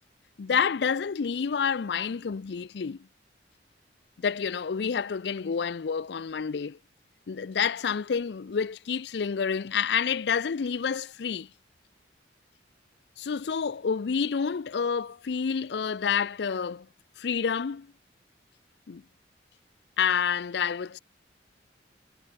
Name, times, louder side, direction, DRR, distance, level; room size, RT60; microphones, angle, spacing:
voice 1, 0.4-3.1 4.2-6.8 7.3-11.5 13.2-16.9 17.2-17.9 18.9-19.0 20.0-21.0, left 6 dB, 65° left, 0.4 m, -28 dB
head